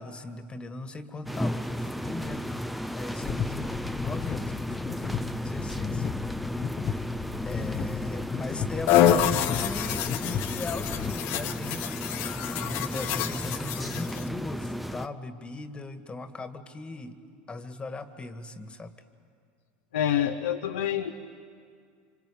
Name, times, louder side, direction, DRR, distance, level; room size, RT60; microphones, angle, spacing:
voice 1, 0.0-6.1 7.5-17.2 17.5-18.9, left 3 dB, 20° left, 9 dB, 1.9 m, -38 dB
sound 1, 1.3-15.1, equal, ahead, 0.7 m, -34 dB
sound 2, 3.2-11.1, left 7 dB, 35° left, 0.8 m, -34 dB
sound 3, 8.9-14.3, left 11 dB, 60° left, 1.4 m, -27 dB
voice 2, 19.9-21.1, left 10 dB, 90° left, 3 dB, 1.0 m, -27 dB
26.5 x 26.0 x 8.7 m, 2.2 s
hypercardioid pair, 95°, 5 cm